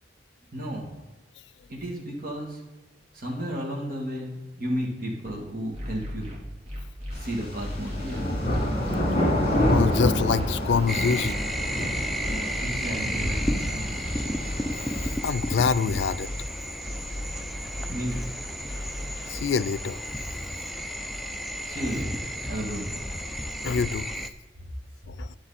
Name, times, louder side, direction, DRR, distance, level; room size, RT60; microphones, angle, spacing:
voice 1, 0.5-0.9 1.7-2.6 3.1-6.3 7.1-8.3 12.6-14.2 17.9-18.3 21.6-23.0, equal, 55° right, 2.2 m, -33 dB
sound 1, 5.2-5.3 5.7-7.1 7.6-9.0 9.4-10.8 11.3-12.7 13.1-14.5 15.0-16.4 16.8-18.2 18.6-19.4, left 1 dB, 35° right, 3.2 m, -36 dB
sound 2, 7.1-15.1, equal, 35° left, 3.2 m, -28 dB
voice 2, 9.7-11.4 14.8-16.3 19.3-20.0 23.6-24.1 25.1-25.4, left 5 dB, 85° left, 0.4 m, -26 dB
sound 3, 10.9-24.3, equal, ahead, 0.5 m, -33 dB
10.5 x 7.6 x 4.2 m
head